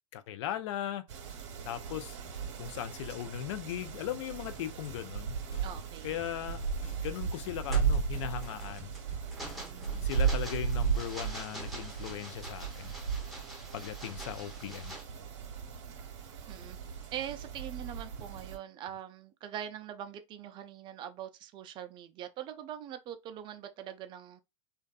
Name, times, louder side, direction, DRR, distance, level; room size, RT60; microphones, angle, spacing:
voice 1, 0.1-1.1 1.6-2.2 2.6-5.4 6.0-6.6 7.0-8.9 10.0-12.9 13.7-14.9, left 11 dB, 60° left, 0.4 m, -38 dB
sound 1, 1.1-18.6, right 6 dB, 60° right, 0.9 m, -36 dB
sound 2, 4.9-10.1, left 3 dB, 40° left, 1.2 m, -55 dB
voice 2, 5.6-6.2 9.6-10.1 16.5-16.8 17.1-24.4, right 10 dB, 30° right, 0.4 m, -43 dB
sound 3, 6.6-6.9 7.4-15.0, equal, ahead, 0.8 m, -46 dB
2.5 x 2.2 x 2.3 m
hypercardioid pair, 115°, 17 cm